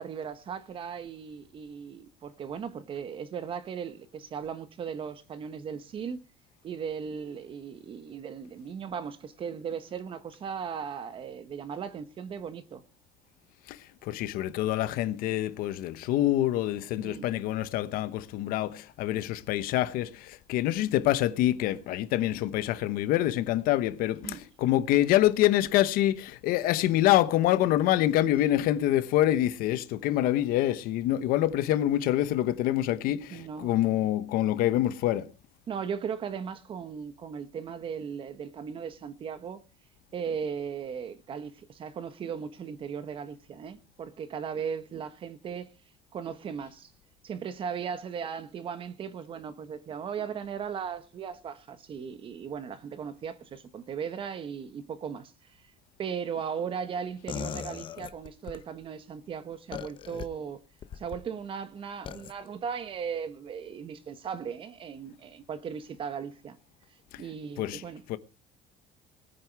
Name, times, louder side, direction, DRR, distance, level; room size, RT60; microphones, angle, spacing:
voice 1, 0.0-6.2 6.6-12.8 17.0-17.3 24.2-24.4 28.5-28.6 33.3-33.7 35.7-39.6 40.1-45.7 46.1-46.9 47.2-55.3 56.0-60.6 60.9-66.6 67.2-68.0, right 7 dB, 35° right, 1.3 m, -37 dB
voice 2, 14.0-35.3 67.6-67.8 68.1-68.2, left 13 dB, 65° left, 1.0 m, -26 dB
sound 1, 57.3-58.6 59.7-60.3 60.8-61.2 62.1-62.3, left 8 dB, 30° left, 0.8 m, -38 dB
20.0 x 9.5 x 4.7 m
cardioid pair, 160°, 16 cm